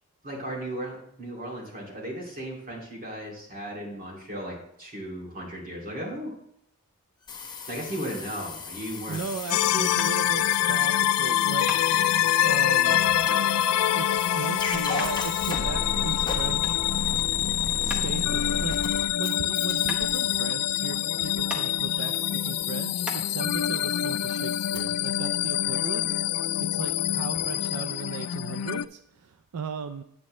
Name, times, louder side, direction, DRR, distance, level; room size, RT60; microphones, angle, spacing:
voice 1, 0.2-6.3 7.7-9.2 9.7-9.8, right 1 dB, 40° right, -3 dB, 2.5 m, -36 dB
sound 1, 7.3-24.8, left 4 dB, 20° left, 1.1 m, -36 dB
voice 2, 9.1-11.7 12.4-13.2 14.0-16.9 17.8-18.8 19.2-26.1 26.7-30.0, right 5 dB, 90° right, 9 dB, 0.4 m, -37 dB
sound 2, 9.5-28.8, left 12 dB, 85° left, 0.3 m, -26 dB
sound 3, 10.0-23.2, left 1 dB, 5° right, 0.9 m, -42 dB
8.6 x 8.6 x 3.1 m, 0.72 s
head